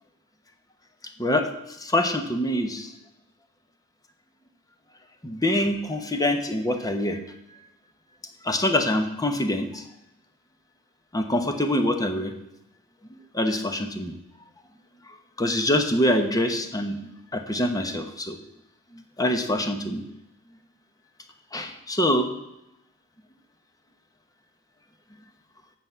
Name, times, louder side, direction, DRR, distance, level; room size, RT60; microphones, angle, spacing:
voice 1, 1.8-2.9 5.2-7.2 8.4-9.8 11.1-12.3 13.3-14.1 15.4-16.9 17.3-18.4 19.2-20.0 21.5-22.3, left 1 dB, 15° left, 6 dB, 1.0 m, -24 dB
8.0 x 6.0 x 7.9 m, 0.86 s
head